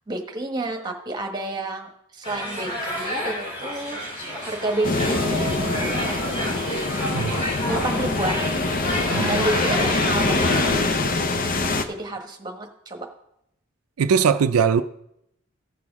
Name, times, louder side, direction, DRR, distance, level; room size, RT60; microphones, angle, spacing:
voice 1, 0.1-4.0 4.4-6.8 7.7-8.5 9.3-10.7 11.9-13.1, right 2 dB, 20° right, 1.2 m, -30 dB
sound 1, 2.2-10.8, equal, 25° left, 2.0 m, -30 dB
sound 2, 4.8-11.8, left 3 dB, 40° left, 0.6 m, -24 dB
voice 2, 7.1-7.4 9.1-9.5 14.0-14.8, right 6 dB, 85° right, 0.4 m, -20 dB
15.5 x 6.0 x 3.6 m
head